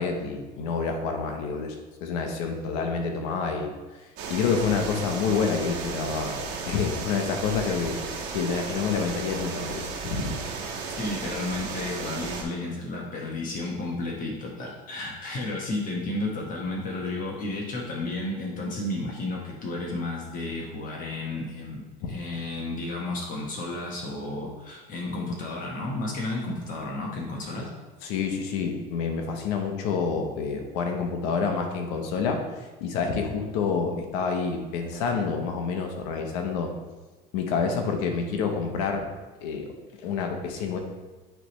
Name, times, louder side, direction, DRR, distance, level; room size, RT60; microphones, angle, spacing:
voice 1, 0.0-3.8 4.3-6.4 6.7-8.0 8.3-10.4 22.0-22.2 28.0-36.7 37.3-39.0 39.4-39.7 40.0-40.8, left 5 dB, 85° left, 3 dB, 1.0 m, -28 dB
sound 1, 4.2-12.4, right 4 dB, 70° right, 1.3 m, -34 dB
voice 2, 10.9-27.7, left 2 dB, 45° left, -2 dB, 1.3 m, -32 dB
9.0 x 3.4 x 3.1 m, 1.2 s
supercardioid pair, 115°, 19 cm